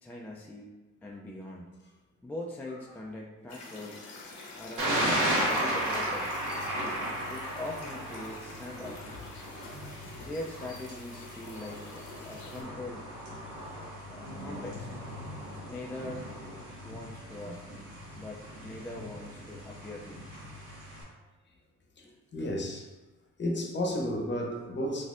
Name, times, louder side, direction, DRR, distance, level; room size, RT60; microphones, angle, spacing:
voice 1, 0.0-1.7 2.2-4.0 4.6-6.4 7.3-9.2 10.2-13.1 14.1-15.0 15.7-16.2 16.8-17.6 18.2-20.7 21.0-21.2, left 2 dB, 5° left, -2 dB, 0.3 m, -42 dB
Zavitan River, 3.5-12.6, left 3 dB, 75° left, 0.9 m, -47 dB
Thunder, 4.8-21.0, right 1 dB, 85° right, 1.3 m, -35 dB
voice 2, 9.7-10.3 17.5-17.6 22.0-22.9 23.4-25.0, left 1 dB, 35° left, 1 dB, 0.8 m, -33 dB
4.1 x 2.6 x 2.4 m, 1.2 s
cardioid pair, 90°, 30 cm